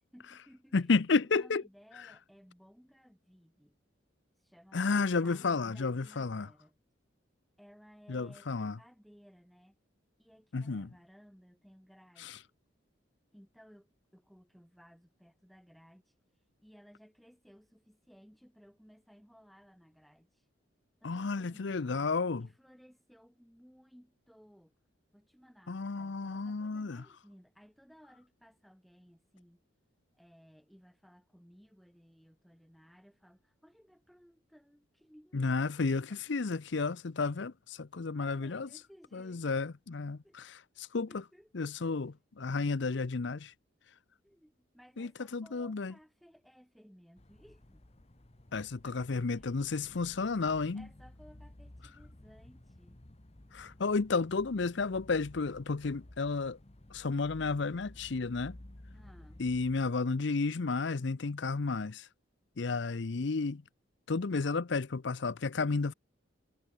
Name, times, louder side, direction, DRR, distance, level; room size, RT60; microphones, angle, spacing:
voice 1, 0.0-0.9 1.2-3.8 4.4-4.8 5.1-6.8 7.6-9.8 10.2-12.5 13.3-16.1 16.6-20.5 21.0-24.7 25.1-29.6 30.1-35.8 38.2-39.5 40.2-40.4 41.1-41.6 41.9-42.0 44.2-47.9 48.5-49.6 50.7-53.0 58.9-59.4, equal, ahead, 4.5 m, -60 dB
voice 2, 0.7-1.6 4.7-6.5 8.1-8.8 10.5-10.9 12.2-12.4 21.0-22.5 25.7-27.0 35.3-38.7 39.1-41.2 41.5-43.5 45.0-45.9 48.5-50.8 53.5-56.6 56.9-58.6 59.4-62.1 62.6-63.6 64.1-65.9, left 4 dB, 60° left, 0.6 m, -32 dB
sound 1, 47.2-59.9, left 1 dB, 30° left, 1.1 m, -54 dB
head